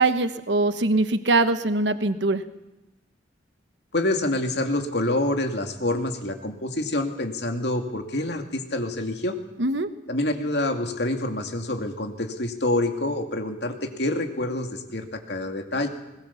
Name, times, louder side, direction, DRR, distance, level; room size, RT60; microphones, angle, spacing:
voice 1, 0.0-2.4 9.6-9.9, right 2 dB, 80° right, 10 dB, 1.1 m, -22 dB
voice 2, 3.9-9.3 10.1-15.9, left 1 dB, 65° left, 4 dB, 2.5 m, -27 dB
21.0 x 21.0 x 7.1 m, 1.0 s
head